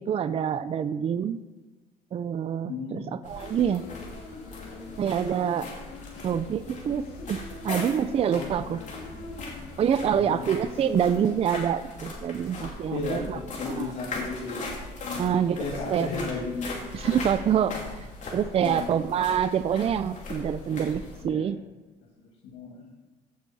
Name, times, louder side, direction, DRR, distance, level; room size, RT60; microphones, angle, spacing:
voice 1, 0.0-1.4 2.1-3.8 5.0-5.7 6.2-7.4 7.6-8.8 9.8-13.4 13.7-13.9 15.2-15.6 15.9-16.1 16.9-18.0 18.3-21.6, right 8 dB, 35° right, 13 dB, 0.4 m, -26 dB
voice 2, 2.7-3.0 8.3-8.6 10.0-10.5 12.9-14.7 15.0-16.7 18.6-18.9 21.2-21.5 22.5-22.9, left 4 dB, 85° left, -4 dB, 2.0 m, -34 dB
sound 1, 3.2-21.2, left 2 dB, 45° left, 2.7 m, -39 dB
Human voice, 3.4-11.3, left 3 dB, 65° left, 2.0 m, -44 dB
15.5 x 6.4 x 4.1 m, 1.2 s
cardioid pair, 110°, 17 cm